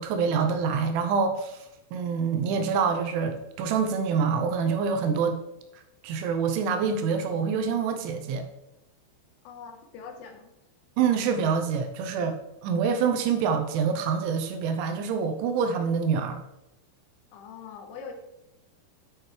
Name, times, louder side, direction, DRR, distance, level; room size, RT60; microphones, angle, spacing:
voice 1, 0.0-1.6 1.9-5.4 6.0-8.5 11.0-16.4, right 6 dB, 80° right, 6 dB, 3.1 m, -26 dB
voice 2, 9.5-10.5 17.3-18.1, left 6 dB, 85° left, 4 dB, 3.8 m, -42 dB
10.0 x 9.2 x 3.3 m, 0.91 s
omnidirectional pair, 5.7 m